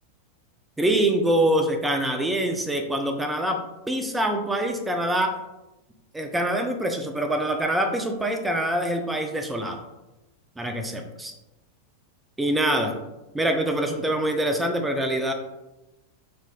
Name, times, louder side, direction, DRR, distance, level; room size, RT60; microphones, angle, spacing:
voice 1, 0.8-3.6 3.9-5.4 6.1-9.8 10.6-11.3 12.4-13.0 13.3-15.3, right 1 dB, 10° right, 4 dB, 0.4 m, -25 dB
3.1 x 2.6 x 3.6 m, 0.98 s
figure-of-eight pair, 90°, 0 cm